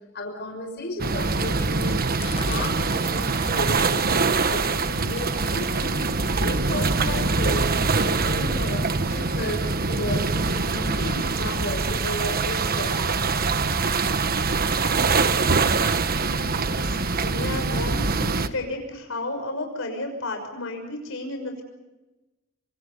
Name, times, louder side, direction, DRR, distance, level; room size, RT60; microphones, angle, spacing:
voice 1, 0.1-3.9 4.3-6.1 6.4-7.7 8.0-13.3, left 1 dB, 55° left, 3 dB, 6.1 m, -34 dB
sound 1, 1.0-18.5, right 4 dB, 45° right, 1.3 m, -24 dB
sound 2, 2.2-4.2 4.5-4.9 5.2-6.0 6.5-6.9 7.7-7.8 7.9-8.1 8.7-8.8 9.5-9.6, left 3 dB, 30° left, 1.2 m, -40 dB
voice 2, 16.1-21.6, left 2 dB, 70° left, 4 dB, 6.3 m, -33 dB
28.5 x 26.5 x 5.5 m, 1.1 s
head